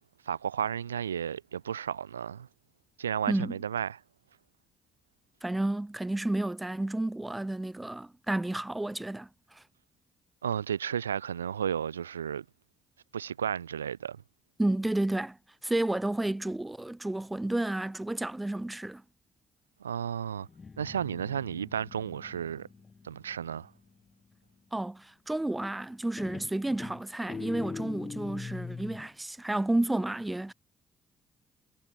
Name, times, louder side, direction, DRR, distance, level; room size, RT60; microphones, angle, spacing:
voice 1, 0.3-2.5 3.0-4.0 10.4-12.4 13.1-14.2 19.8-20.5 20.8-22.7 23.0-23.7, right 8 dB, 85° right, 0.4 m, -33 dB
voice 2, 5.4-9.6 14.6-15.4 15.6-19.0 24.7-30.5, right 1 dB, 15° right, 0.5 m, -31 dB
Guitar, 20.4-24.0 25.5-25.9 26.2-29.1, left 5 dB, 35° left, 1.1 m, -42 dB
figure-of-eight pair, 45°, 0 cm